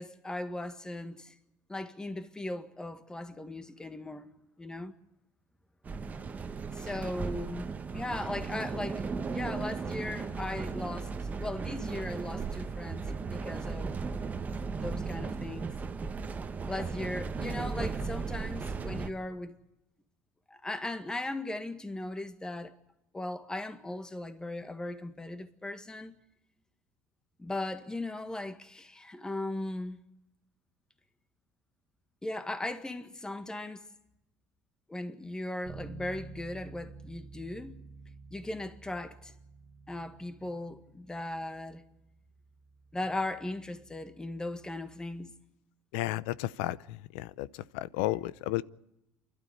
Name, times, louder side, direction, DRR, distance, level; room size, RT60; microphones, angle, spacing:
voice 1, 0.0-1.4 1.7-4.3 4.6-4.9 6.7-11.1 11.4-13.0 13.3-14.0 14.8-15.8 16.6-19.6 20.5-22.7 23.1-26.2 27.4-30.0 32.2-33.8 34.9-37.8 38.3-39.3 39.9-41.8 42.9-45.3, left 2 dB, 10° left, 1.8 m, -38 dB
sound 1, 5.8-19.1, right 4 dB, 25° right, 1.4 m, -36 dB
Bass guitar, 35.6-45.4, right 4 dB, 50° right, 1.9 m, -51 dB
voice 2, 45.9-46.8 47.1-47.5 47.7-48.6, left 16 dB, 85° left, 0.7 m, -32 dB
28.5 x 12.5 x 8.1 m
supercardioid pair, 105°, 6 cm